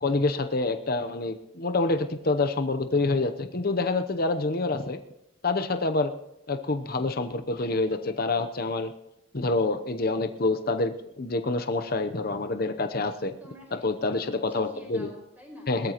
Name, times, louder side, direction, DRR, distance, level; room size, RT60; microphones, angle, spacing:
voice 1, 0.0-5.0 5.4-6.1 6.5-8.9 9.3-13.3 13.8-15.1 15.7-15.9, left 3 dB, 45° left, 8 dB, 0.8 m, -27 dB
voice 2, 13.4-15.8, equal, 10° right, 0 dB, 4.7 m, -49 dB
21.0 x 13.0 x 3.0 m, 0.87 s
head